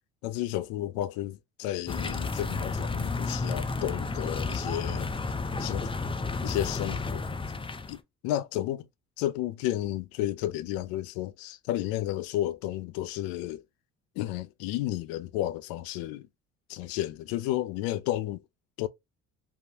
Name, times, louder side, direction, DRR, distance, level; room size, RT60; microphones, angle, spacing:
voice 1, 0.2-5.1 5.6-5.9 6.4-7.4 7.9-8.9 9.2-13.6 14.2-16.3 16.7-18.4 18.8-18.9, left 14 dB, 75° left, 0.5 m, -32 dB
sound 1, 1.9-8.0, left 3 dB, 15° left, 0.5 m, -32 dB
3.5 x 2.2 x 2.6 m
hypercardioid pair, 60°, 35 cm